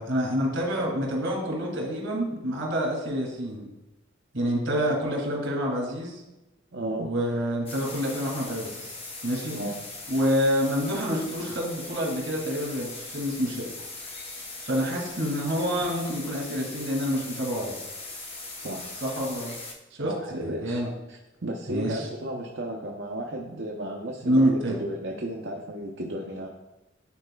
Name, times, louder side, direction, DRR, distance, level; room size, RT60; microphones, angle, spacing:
voice 1, 0.0-3.7 4.3-6.2 7.0-8.9 9.2-9.6 10.1-13.7 14.6-17.8 19.0-19.5 19.9-20.9 21.7-22.1 24.2-24.8, equal, 80° right, 0 dB, 2.1 m, -27 dB
voice 2, 6.7-7.1 9.5-9.8 18.6-19.0 20.0-20.8 21.1-26.5, right 1 dB, 65° right, -1 dB, 0.6 m, -34 dB
sound 1, 7.7-19.7, left 3 dB, 30° left, 0.8 m, -40 dB
9.9 x 4.5 x 2.3 m, 0.96 s
head